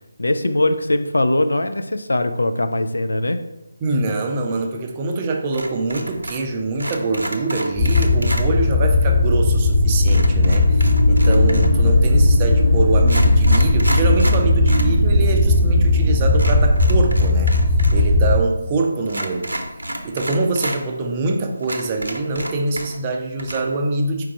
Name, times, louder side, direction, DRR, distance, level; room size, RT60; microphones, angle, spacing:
voice 1, 0.2-3.4, left 1 dB, 75° left, 8 dB, 0.4 m, -21 dB
voice 2, 3.8-17.5 17.9-19.5 20.0-24.3, right 3 dB, 25° right, 3 dB, 0.5 m, -24 dB
sound 1, 5.5-6.5 6.8-8.5 10.1-11.8 12.5-12.6 13.0-14.9 15.2-15.3 16.3-18.0 18.3-18.4 19.1-20.8 21.3-21.4 21.6-23.1 23.4-23.6, right 1 dB, 75° right, 0.7 m, -30 dB
sound 2, 7.8-18.4, left 2 dB, 10° left, 1.1 m, -16 dB
sound 3, 9.8-17.6 18.1-18.2, left 1 dB, 90° left, 0.9 m, -31 dB
4.6 x 2.4 x 4.5 m, 0.95 s
figure-of-eight pair, 155°, 0 cm